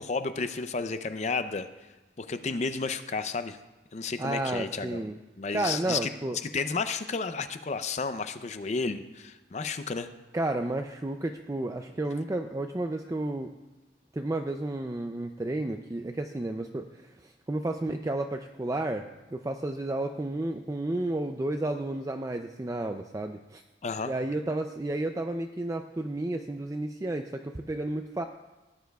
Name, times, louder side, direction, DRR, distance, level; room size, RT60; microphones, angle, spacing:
voice 1, 0.0-1.7 2.2-3.6 3.9-5.1 5.4-6.1 6.4-10.1 23.8-24.1, left 4 dB, 40° left, 10 dB, 0.5 m, -32 dB
voice 2, 4.2-5.2 5.5-6.4 10.3-13.5 14.1-23.6 24.1-28.2, right 2 dB, 20° right, 6 dB, 0.4 m, -32 dB
17.0 x 10.0 x 2.3 m, 1.2 s
head